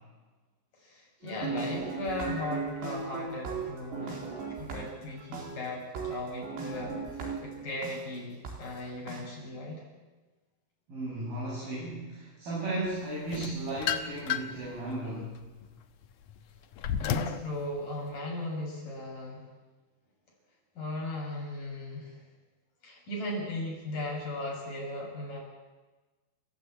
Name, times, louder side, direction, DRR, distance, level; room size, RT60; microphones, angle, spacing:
voice 1, 0.8-9.8 17.0-19.4 20.7-22.2 22.8-25.4, left 2 dB, 50° left, -2 dB, 8.3 m, -37 dB
sound 1, 1.2-7.9 8.4-8.5 9.1-9.2, right 5 dB, 75° right, 6.4 m, -37 dB
voice 2, 10.9-15.5, right 2 dB, 55° right, -7 dB, 8.8 m, -35 dB
sound 2, 13.3-14.7 15.2-17.5, left 8 dB, 75° left, 1.9 m, -32 dB
29.5 x 14.5 x 8.9 m, 1.2 s
omnidirectional pair, 5.0 m